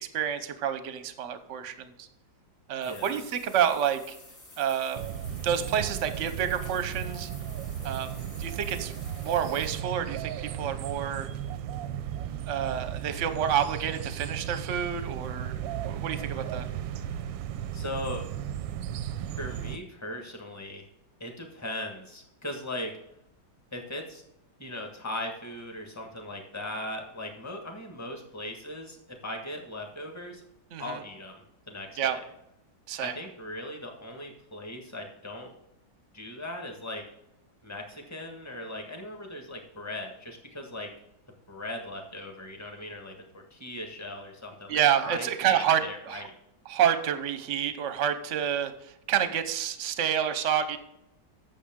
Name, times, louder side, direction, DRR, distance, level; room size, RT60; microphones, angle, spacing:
voice 1, 0.0-2.1 2.7-4.2 4.6-5.0 5.4-7.3 7.8-8.9 9.2-11.3 12.5-15.5 15.8-16.7 30.7-31.0 32.0-32.2 32.9-33.1 44.7-45.8 46.1-46.2 46.7-50.8, right 9 dB, 55° right, 11 dB, 0.9 m, -28 dB
sound 1, 2.8-9.8, left 2 dB, 35° left, 2.2 m, -50 dB
voice 2, 2.8-3.2 16.2-16.9 17.7-18.2 19.4-20.8 21.2-22.9 23.7-24.2 24.6-30.4 30.8-32.2 33.0-35.6 36.1-37.0 37.6-40.9 41.5-46.3, left 1 dB, 10° left, 2 dB, 1.3 m, -39 dB
sound 2, 5.0-19.8, right 10 dB, 90° right, 1.3 m, -35 dB
9.0 x 6.8 x 3.7 m, 0.83 s
omnidirectional pair, 2.0 m